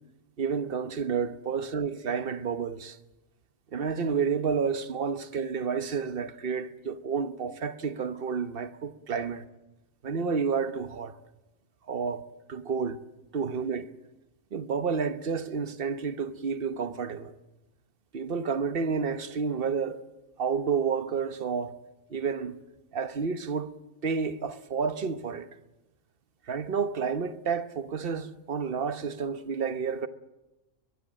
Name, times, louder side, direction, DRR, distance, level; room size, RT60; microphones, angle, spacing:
voice 1, 0.4-3.0 3.7-9.4 10.0-11.2 11.9-12.2 12.5-13.0 13.3-13.9 14.5-17.3 18.1-20.0 20.4-21.7 22.1-22.5 22.9-23.7 24.0-25.5 26.5-30.1, right 6 dB, 45° right, 1.2 m, -30 dB
22.5 x 22.0 x 7.6 m
omnidirectional pair, 1.4 m